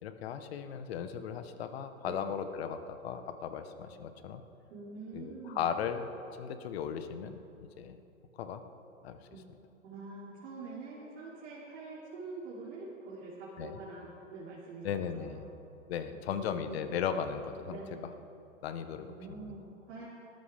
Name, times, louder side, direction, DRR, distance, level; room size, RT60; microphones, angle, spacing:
voice 1, 0.0-4.4 5.1-6.1 6.4-7.4 7.8-8.0 8.4-8.6 9.0-9.2 13.6-13.8 14.8-15.4 15.9-17.8 18.6-19.1 19.4-19.5, left 8 dB, 45° left, 9 dB, 1.1 m, -36 dB
voice 2, 4.7-5.8 9.3-9.4 9.8-15.4 16.1-16.8 17.7-18.1 18.9-20.1, right 3 dB, 55° right, -7 dB, 3.1 m, -45 dB
18.5 x 13.5 x 3.5 m, 2.8 s
hypercardioid pair, 145°, 42 cm